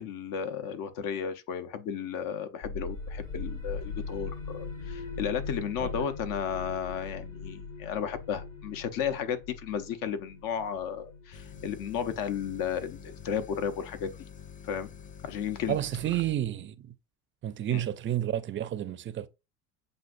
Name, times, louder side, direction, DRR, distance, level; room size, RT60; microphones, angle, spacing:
voice 1, 0.0-14.1 14.7-14.9 15.2-15.8 17.7-17.8, left 8 dB, 55° left, 0.9 m, -34 dB
sound 1, 2.6-14.0, left 4 dB, 80° left, 2.8 m, -40 dB
sound 2, 11.3-16.3, left 7 dB, 20° left, 0.4 m, -47 dB
voice 2, 15.7-16.9 17.4-19.3, right 12 dB, 30° right, 0.5 m, -30 dB
7.6 x 2.6 x 2.6 m
hypercardioid pair, 85°, 40 cm